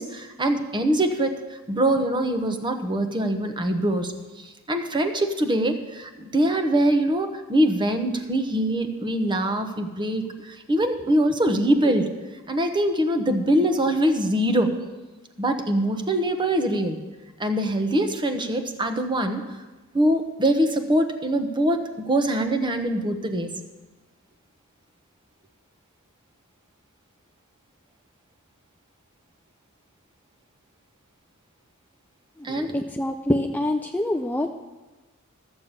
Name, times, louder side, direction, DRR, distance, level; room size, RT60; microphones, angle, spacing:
voice 1, 0.0-1.4 1.7-4.1 4.7-12.1 12.5-14.8 15.4-17.0 17.4-19.4 19.9-23.5 32.4-32.7, right 1 dB, 20° right, 7 dB, 1.0 m, -23 dB
voice 2, 32.5-34.5, left 1 dB, 10° left, 4 dB, 0.4 m, -25 dB
14.0 x 7.2 x 6.7 m, 1.2 s
head